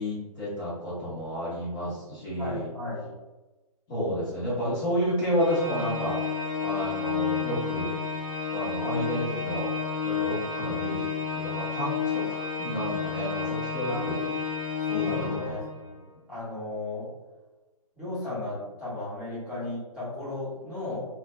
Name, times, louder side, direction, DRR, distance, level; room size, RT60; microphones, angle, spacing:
voice 1, 0.0-2.7 3.9-6.2 6.6-8.0 8.5-9.7 10.0-14.2 14.9-15.6, equal, 30° left, -9 dB, 1.0 m, -31 dB
voice 2, 2.3-3.1 13.9-14.3 14.9-17.1 17.9-21.1, left 2 dB, 5° right, -12 dB, 1.2 m, -35 dB
Organ, 5.4-16.0, left 6 dB, 60° left, 0.8 m, -31 dB
2.5 x 2.4 x 2.3 m, 1.1 s
hypercardioid pair, 145°, 19 cm